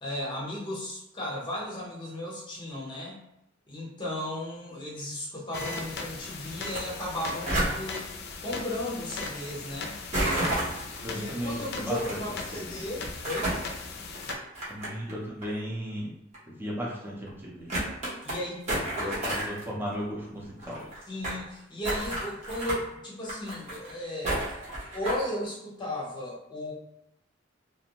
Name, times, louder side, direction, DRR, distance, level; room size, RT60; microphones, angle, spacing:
voice 1, 0.0-3.2 3.7-8.0 8.4-10.0 11.1-13.5 18.2-19.2 21.1-24.4 24.9-26.7, left 1 dB, 25° left, -4 dB, 0.8 m, -35 dB
sound 1, 5.5-14.3, left 4 dB, 55° left, 0.4 m, -39 dB
sound 2, 6.6-6.8 7.1-7.8 10.1-11.0 11.9-12.1 13.0-13.7 14.2-15.1 15.4-15.5 16.3-16.4 16.9-17.0 17.3-17.4 17.7-18.4 18.7-19.6 19.9-20.0 20.2-20.3 20.5-21.4 21.8-22.8 23.2-23.9 24.2-25.3, right 1 dB, 35° right, 0.9 m, -30 dB
voice 2, 11.0-12.2 12.5-12.8 14.7-16.1 16.5-17.7 19.0-20.8, equal, 10° right, -4 dB, 0.6 m, -35 dB
2.5 x 2.1 x 2.9 m, 0.84 s
head